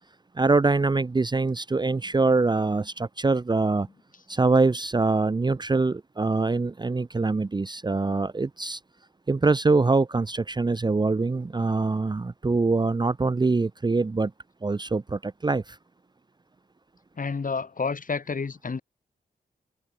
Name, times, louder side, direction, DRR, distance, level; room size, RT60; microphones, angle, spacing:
voice 1, 0.3-3.9 4.3-8.8 9.3-14.3 14.6-15.8, right 3 dB, 25° right, 0.7 m, -24 dB
voice 2, 17.1-18.8, left 4 dB, 50° left, 4.3 m, -30 dB
supercardioid pair, 45°, 18 cm